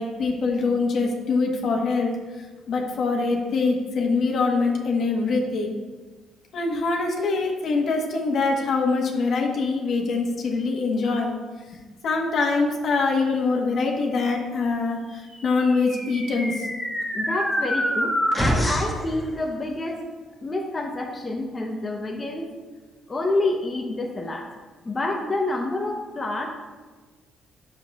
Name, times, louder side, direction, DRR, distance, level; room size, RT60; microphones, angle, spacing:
voice 1, 0.0-2.1 2.7-5.8 6.5-11.3 12.0-16.7, left 3 dB, 55° left, 1 dB, 1.2 m, -24 dB
sound 1, 15.4-19.0, equal, ahead, 1.4 m, -26 dB
voice 2, 17.1-20.0 20.4-22.5 23.1-24.5 24.8-26.5, left 2 dB, 20° left, 0 dB, 0.7 m, -28 dB
9.2 x 6.7 x 2.3 m, 1.3 s
cardioid pair, 120°, 0 cm